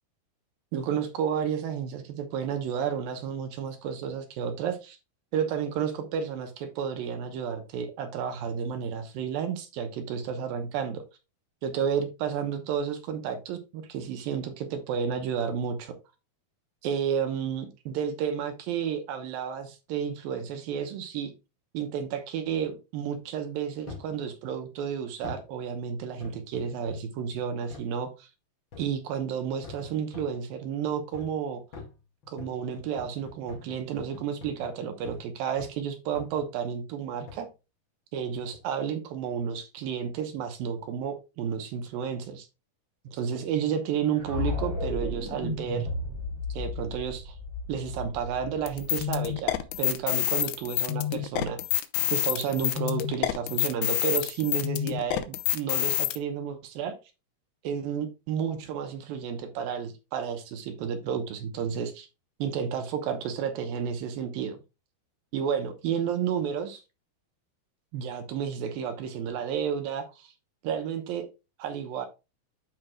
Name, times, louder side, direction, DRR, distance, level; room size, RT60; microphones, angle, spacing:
voice 1, 0.7-5.0 5.3-11.0 11.6-15.9 16.8-21.3 21.7-28.3 28.8-31.6 32.3-37.5 38.1-42.5 43.1-45.9 46.5-47.4 47.7-51.6 52.1-57.0 57.6-62.1 62.4-64.6 65.3-66.8 67.9-70.3 70.6-71.3 71.6-72.1, right 7 dB, 75° right, 2.6 m, -31 dB
sound 1, 23.9-24.2 25.2-25.5 26.2-27.2 27.7-27.9 28.7-29.1 29.6-30.4 31.1-31.4 31.7-35.3 35.6-35.8 36.2-36.5 37.3-37.5 38.3-38.7 39.3-39.4, left 4 dB, 40° left, 1.9 m, -45 dB
sound 2, 44.1-50.2, left 2 dB, 15° right, 2.1 m, -34 dB
sound 3, 48.7-56.2, left 12 dB, 85° left, 2.6 m, -27 dB
12.5 x 4.7 x 2.3 m
omnidirectional pair, 4.5 m